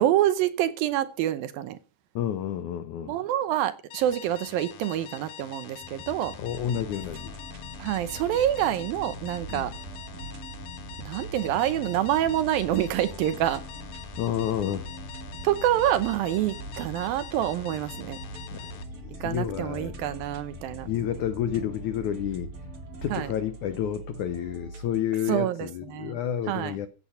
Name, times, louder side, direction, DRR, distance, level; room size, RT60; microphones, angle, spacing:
voice 1, 0.0-1.8 3.1-6.4 7.8-9.7 11.0-13.6 15.4-18.2 19.2-20.9 23.1-23.3 25.3-25.7 25.9-26.2 26.5-26.7, right 12 dB, 75° right, 2.4 m, -26 dB
voice 2, 2.2-3.2 6.4-7.4 9.5-9.7 14.2-14.9 18.5-19.9 20.9-22.5 23.0-26.9, left 10 dB, 80° left, 1.7 m, -30 dB
sound 1, 3.9-18.8, left 9 dB, 65° left, 2.8 m, -45 dB
sound 2, 5.8-23.2, left 1 dB, 40° left, 5.6 m, -45 dB
sound 3, 6.5-25.0, right 2 dB, 40° right, 2.4 m, -44 dB
15.5 x 8.6 x 5.7 m
omnidirectional pair, 4.7 m